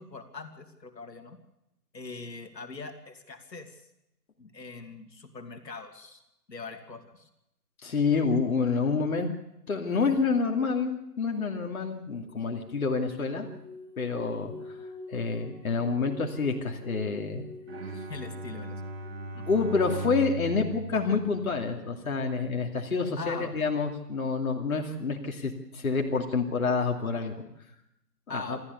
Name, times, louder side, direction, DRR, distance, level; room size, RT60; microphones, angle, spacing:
voice 1, 0.0-1.4 1.9-3.8 4.4-6.2 6.5-7.3 18.1-18.9 19.3-19.7 23.2-23.6 28.3-28.6, left 4 dB, 80° left, 6 dB, 2.7 m, -42 dB
voice 2, 7.8-9.3 9.7-13.5 14.0-14.8 15.1-17.4 19.5-27.4 28.3-28.6, left 4 dB, 55° left, 3 dB, 2.7 m, -28 dB
sound 1, 12.0-19.8, left 3 dB, 5° left, 4.2 m, -46 dB
Bowed string instrument, 17.7-22.1, right 1 dB, 40° right, 4.5 m, -38 dB
27.0 x 14.0 x 6.9 m, 0.84 s
hypercardioid pair, 165°, 50 cm